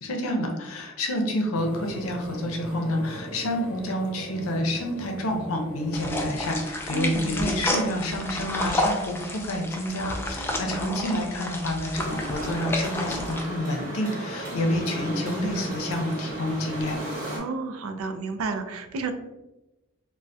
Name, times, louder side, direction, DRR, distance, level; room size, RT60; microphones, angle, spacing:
voice 1, 0.0-17.0, left 1 dB, 80° left, 2 dB, 0.6 m, -28 dB
sound 1, 1.5-6.5, right 1 dB, 5° right, 0.8 m, -39 dB
sound 2, 5.9-13.4, left 1 dB, 10° left, 0.3 m, -30 dB
voice 2, 6.9-7.4 10.7-11.3 17.4-19.1, right 4 dB, 75° right, 7 dB, 0.4 m, -32 dB
sound 3, 11.9-17.4, right 1 dB, 40° right, 0.9 m, -35 dB
3.3 x 2.1 x 2.6 m, 0.98 s
head